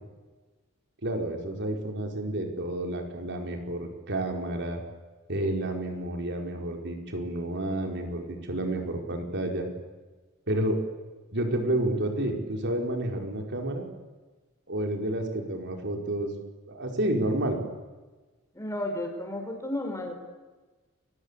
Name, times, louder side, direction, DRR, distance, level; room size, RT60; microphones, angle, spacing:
voice 1, 1.0-4.8 5.3-9.7 10.5-10.8 11.3-13.8 14.7-16.3 16.7-17.6, right 1 dB, 55° right, 3 dB, 4.9 m, -30 dB
voice 2, 18.5-20.1, left 1 dB, 15° left, 3 dB, 5.1 m, -32 dB
30.0 x 23.5 x 8.4 m, 1.3 s
head